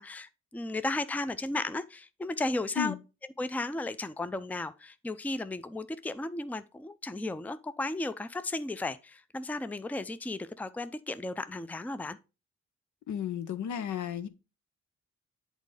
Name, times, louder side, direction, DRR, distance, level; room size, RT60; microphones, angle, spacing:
voice 1, 0.0-2.9 3.4-12.2, left 2 dB, 5° left, 0.5 m, -34 dB
voice 2, 13.1-14.3, left 9 dB, 65° left, 0.8 m, -33 dB
8.2 x 4.1 x 4.9 m
hypercardioid pair, 40°, 33 cm